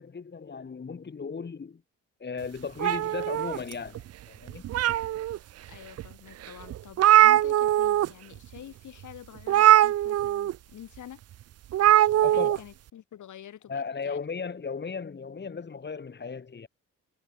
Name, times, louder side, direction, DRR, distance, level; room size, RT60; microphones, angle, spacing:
voice 1, 0.0-1.8 2.2-4.6 12.2-12.6 13.7-16.7, left 5 dB, 35° left, 2.6 m, -36 dB
sound 1, 2.8-4.0 4.5-5.4 6.0-6.1 6.4-6.5 6.7-8.1 8.4-8.6 9.5-10.5 11.7-12.6, right 13 dB, 55° right, 0.5 m, -21 dB
voice 2, 5.7-11.2 12.3-14.3, left 10 dB, 80° left, 6.5 m, -47 dB
cardioid pair, 90°, 30 cm